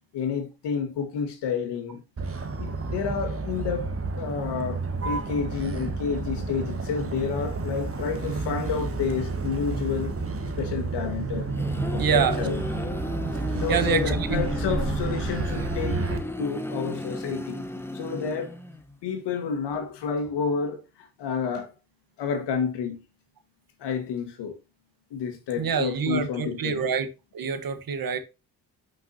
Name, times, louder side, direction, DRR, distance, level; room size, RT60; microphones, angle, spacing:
voice 1, 0.1-2.0 2.6-4.8 5.0-10.1 10.6-11.5 11.9-12.6 13.5-16.0 16.4-17.7 17.9-18.5 19.0-20.8 21.2-21.7 22.2-23.0 23.8-24.6 25.1-26.8, left 6 dB, 85° left, 1.8 m, -30 dB
Motor vehicle (road), 2.2-16.2, right 3 dB, 35° right, 1.5 m, -30 dB
sound 1, 11.2-18.9, left 1 dB, 5° left, 1.0 m, -35 dB
voice 2, 12.0-12.5 13.3-14.4 25.6-27.1 27.3-28.2, right 7 dB, 60° right, 1.4 m, -26 dB
8.2 x 5.8 x 2.8 m
cardioid pair, 85°, 40 cm